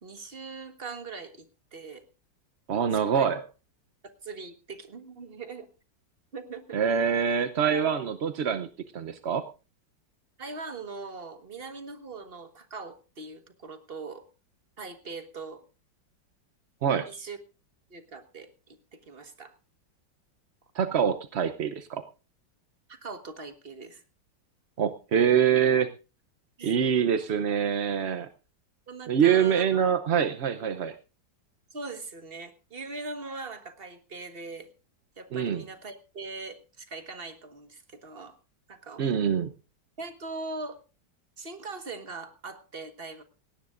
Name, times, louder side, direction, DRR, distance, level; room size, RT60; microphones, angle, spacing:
voice 1, 0.0-2.1 3.1-3.3 4.2-5.7 6.3-6.8 7.6-7.9 10.4-14.3 14.8-15.6 17.1-17.4 17.9-19.5 22.9-24.0 26.6-27.1 28.9-29.8 30.6-30.7 31.7-34.7 35.2-38.4 38.7-39.2 40.0-40.8 41.4-43.2, right 3 dB, 30° right, 9 dB, 1.5 m, -41 dB
voice 2, 2.7-3.4 6.7-8.7 8.9-9.4 16.8-17.1 20.7-22.0 24.8-25.9 26.6-28.3 29.1-30.9 35.3-35.6 39.0-39.5, right 7 dB, 55° right, 9 dB, 0.7 m, -25 dB
17.5 x 17.5 x 2.5 m, 0.32 s
omnidirectional pair, 2.0 m